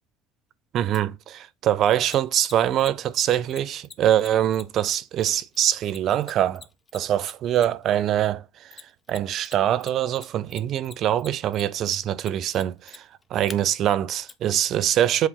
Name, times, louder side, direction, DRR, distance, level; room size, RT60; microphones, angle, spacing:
voice 1, 0.7-6.6 6.9-8.4 9.1-13.0 13.3-15.3, right 11 dB, 55° right, 0.6 m, -23 dB
Mechanisms, 0.9-1.0 2.1-7.9 8.7-9.5 9.8-13.6 14.3-14.4, left 5 dB, 30° left, 0.9 m, -43 dB
7.9 x 3.5 x 4.8 m
supercardioid pair, 80°, 0 cm